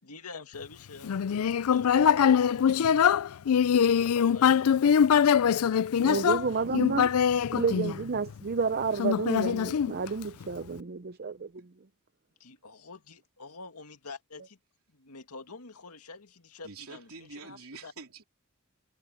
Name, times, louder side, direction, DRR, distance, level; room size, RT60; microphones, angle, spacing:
voice 1, 0.0-2.6 4.0-5.2 6.0-6.4 12.4-14.6 14.9-17.9, left 4 dB, 85° left, 2.1 m, -47 dB
Human voice, 1.0-8.4 9.0-10.4, left 7 dB, 70° left, 0.4 m, -23 dB
voice 2, 6.0-7.1 7.5-11.5, right 5 dB, 45° right, 0.6 m, -30 dB
voice 3, 16.6-18.2, right 4 dB, 65° right, 3.7 m, -46 dB
head